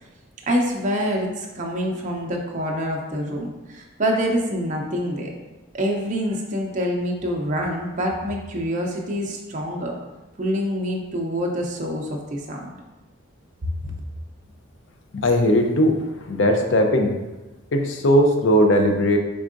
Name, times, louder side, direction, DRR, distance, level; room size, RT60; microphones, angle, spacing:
voice 1, 0.5-5.3 5.7-10.0 10.4-12.7 13.6-13.7, equal, 35° right, 0 dB, 0.5 m, -26 dB
voice 2, 15.1-16.0 16.3-17.1 17.7-19.2, equal, 65° left, 4 dB, 0.5 m, -18 dB
4.4 x 3.6 x 2.5 m, 1.1 s
head